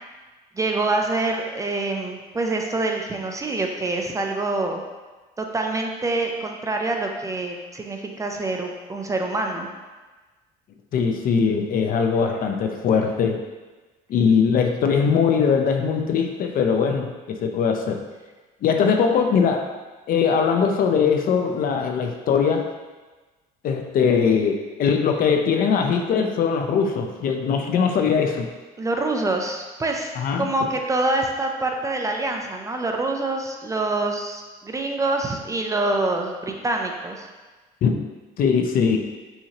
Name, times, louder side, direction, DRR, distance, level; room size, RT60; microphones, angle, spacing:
voice 1, 0.6-4.8 5.4-9.7 28.8-37.3, right 2 dB, 20° right, 2 dB, 0.4 m, -26 dB
voice 2, 10.9-13.4 14.1-18.0 18.6-19.7 20.1-22.6 23.6-28.5 30.2-30.5 37.8-38.0 38.4-39.0, left 6 dB, 55° left, 4 dB, 0.5 m, -21 dB
5.6 x 2.7 x 2.9 m, 1.3 s
cardioid pair, 110°, 17 cm